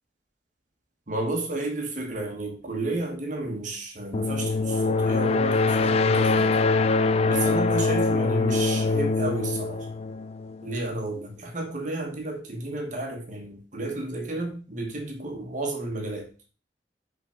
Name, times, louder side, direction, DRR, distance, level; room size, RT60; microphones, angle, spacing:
voice 1, 1.1-6.6 7.2-9.9 10.6-16.3, right 2 dB, 45° right, 1.3 m, -32 dB
sound 1, 4.1-10.8, left 3 dB, 35° left, 0.4 m, -23 dB
5.8 x 3.9 x 4.9 m
head